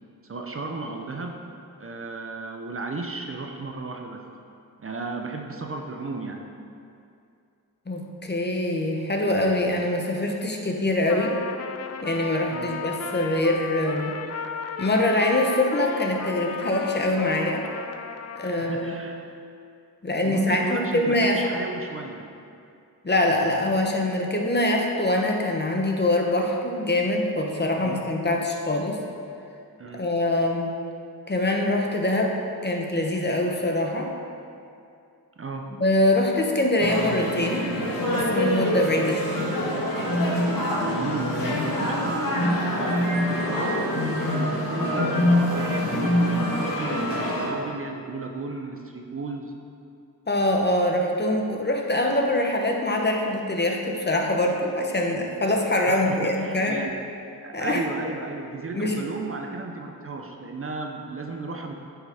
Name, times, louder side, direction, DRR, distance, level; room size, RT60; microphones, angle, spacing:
voice 1, 0.2-1.5 1.8-4.2 4.8-6.4 12.5-12.7 18.4-19.2 20.2-22.3 27.8-28.0 29.8-30.0 35.4-35.7 40.8-49.5 55.9-56.9 57.4-61.7, right 3 dB, 35° right, 2 dB, 0.7 m, -34 dB
voice 2, 7.9-11.3 12.0-14.2 14.8-17.7 18.4-18.9 20.0-21.4 23.0-29.0 29.9-30.7 31.3-32.3 32.6-34.1 35.8-37.7 38.0-39.5 50.3-56.8 57.5-57.8 58.7-58.9, left 1 dB, 25° left, 1 dB, 0.9 m, -24 dB
Trumpet, 11.1-18.9, left 6 dB, 45° left, 0.4 m, -35 dB
sound 1, 36.8-47.5, left 1 dB, 60° left, 1.5 m, -25 dB
9.5 x 5.7 x 3.5 m, 2.5 s
cardioid pair, 80°, 38 cm